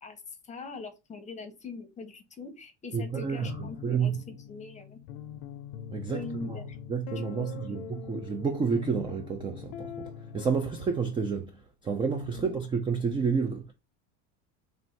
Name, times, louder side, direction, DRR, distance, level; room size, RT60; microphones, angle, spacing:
voice 1, 0.0-5.0 6.1-6.8 7.4-7.8 12.3-12.6, left 4 dB, 20° left, 0.8 m, -42 dB
voice 2, 2.9-3.6 3.8-4.2 5.9-6.6 6.9-10.1 10.3-11.5 11.8-13.7, right 5 dB, 15° right, 0.3 m, -30 dB
sound 1, 3.4-11.2, left 9 dB, 70° left, 0.6 m, -42 dB
3.2 x 2.6 x 4.3 m
supercardioid pair, 125°, 35 cm